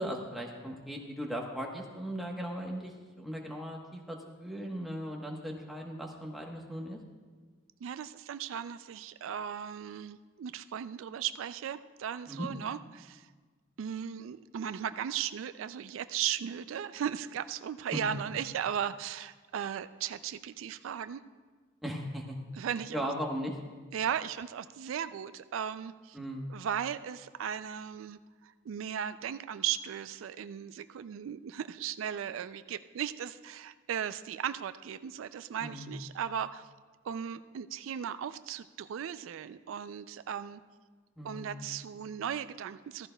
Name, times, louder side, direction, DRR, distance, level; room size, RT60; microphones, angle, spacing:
voice 1, 0.0-7.0 12.3-12.5 17.9-18.0 21.8-22.4 22.9-23.5 26.1-26.5 35.6-35.9 41.2-41.7, equal, ahead, -1 dB, 1.0 m, -38 dB
voice 2, 7.8-13.3 13.8-21.2 22.5-23.0 23.9-26.2 26.5-36.7 37.0-40.6 41.2-43.1, right 9 dB, 85° right, 13 dB, 0.3 m, -37 dB
14.5 x 14.0 x 2.2 m, 1.4 s
head